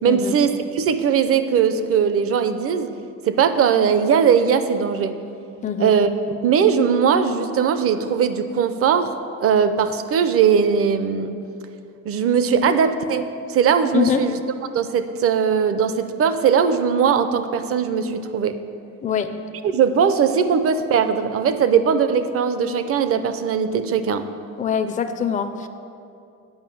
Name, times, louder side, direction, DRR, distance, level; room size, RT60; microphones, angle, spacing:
voice 1, 0.0-2.9 3.3-5.1 5.8-6.1 6.4-11.4 12.0-14.4 14.7-18.6 19.6-24.3, right 7 dB, 45° right, 10 dB, 0.6 m, -19 dB
voice 2, 13.9-14.2 19.0-19.3 24.6-25.7, left 8 dB, 25° left, 8 dB, 0.4 m, -23 dB
9.6 x 5.3 x 7.7 m, 2.5 s
cardioid pair, 150°, 33 cm